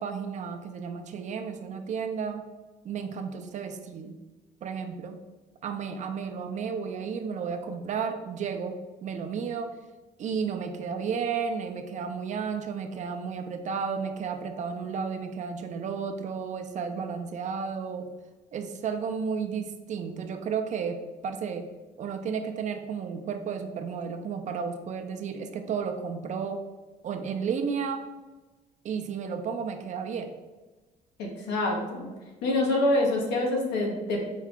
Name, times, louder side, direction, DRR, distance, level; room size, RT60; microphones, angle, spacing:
voice 1, 0.0-2.4 2.8-4.2 4.6-5.2 5.6-8.8 9.0-9.7 10.2-18.1 18.5-21.7 22.0-26.6 27.0-28.0 28.8-30.3, right 6 dB, 45° right, 6 dB, 0.5 m, -32 dB
voice 2, 31.2-32.1 32.4-34.2, left 2 dB, 85° left, 0 dB, 1.0 m, -26 dB
4.5 x 2.4 x 3.6 m, 1.2 s
cardioid pair, 110°, 17 cm